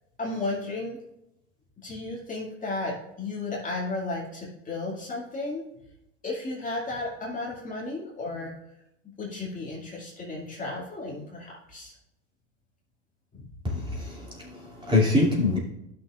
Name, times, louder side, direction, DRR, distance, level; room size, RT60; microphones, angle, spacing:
voice 1, 0.2-1.0 1.8-5.6 6.2-8.5 9.2-11.9 13.3-13.5, left 2 dB, 20° left, -4 dB, 2.2 m, -34 dB
voice 2, 13.6-15.6, left 2 dB, 15° right, -4 dB, 2.7 m, -25 dB
12.5 x 6.3 x 2.4 m, 0.85 s
hypercardioid pair, 100°, 38 cm